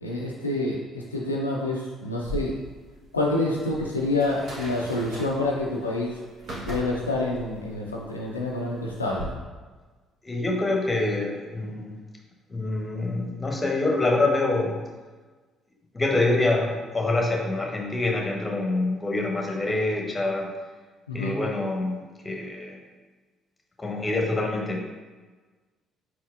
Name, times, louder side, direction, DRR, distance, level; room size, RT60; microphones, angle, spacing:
voice 1, 0.0-2.5 3.1-6.2 6.6-9.3 21.1-21.4, left 2 dB, 90° left, -2 dB, 0.3 m, -27 dB
sound 1, 2.2-9.2, equal, 55° right, 1.0 m, -40 dB
voice 2, 10.2-12.0 12.5-14.8 15.9-20.5 21.1-22.8 23.8-24.8, left 2 dB, 20° left, 0 dB, 0.9 m, -26 dB
4.4 x 4.0 x 2.4 m, 1.4 s
figure-of-eight pair, 50°, 0 cm